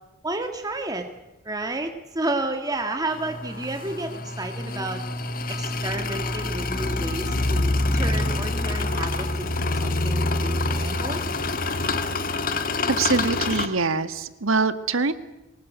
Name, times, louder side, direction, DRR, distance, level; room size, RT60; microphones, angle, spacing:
voice 1, 0.2-1.1 1.4-5.0 5.5-11.2, right 2 dB, 20° right, 5 dB, 1.7 m, -31 dB
sound 1, 3.1-13.7, left 2 dB, 40° left, 1.7 m, -26 dB
voice 2, 12.9-15.1, right 4 dB, 70° right, 12 dB, 1.5 m, -24 dB
24.0 x 19.5 x 8.0 m, 0.99 s
head